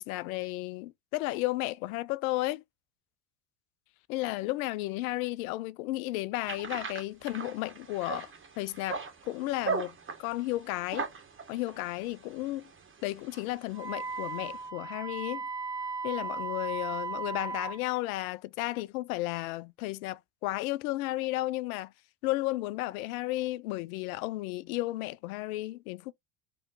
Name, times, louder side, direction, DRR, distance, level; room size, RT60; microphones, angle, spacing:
voice 1, 0.0-2.6 4.1-9.9 10.2-11.1 11.5-12.7 13.0-15.5 16.0-21.9 22.2-26.1, left 18 dB, 65° left, 0.5 m, -33 dB
sound 1, 6.4-14.7, right 5 dB, 25° right, 1.7 m, -40 dB
Wind instrument woodwind instrument, 13.7-17.8, right 4 dB, 10° right, 0.3 m, -36 dB
4.8 x 3.0 x 3.2 m
hypercardioid pair, 70°, 47 cm